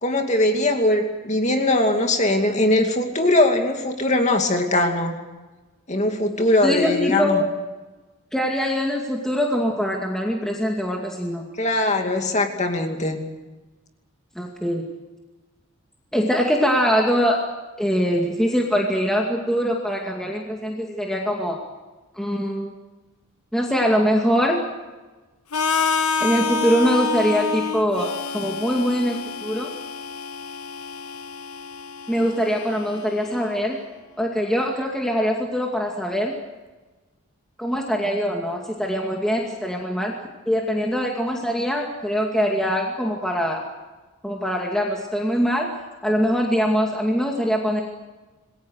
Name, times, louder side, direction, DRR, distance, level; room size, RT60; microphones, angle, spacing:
voice 1, 0.0-5.2 5.9-7.4 11.6-13.2, left 1 dB, 30° left, 4 dB, 2.5 m, -21 dB
voice 2, 6.6-7.5 8.3-11.5 14.4-14.9 16.1-17.4 17.8-21.6 22.2-22.7 23.5-24.6 26.2-29.7 32.1-33.8 34.2-36.4 37.6-40.1 40.5-43.6 44.2-45.7 46.0-47.8, equal, ahead, -1 dB, 2.3 m, -23 dB
Harmonica, 25.5-33.4, left 5 dB, 85° left, 1.1 m, -28 dB
27.5 x 21.0 x 6.5 m, 1.2 s
head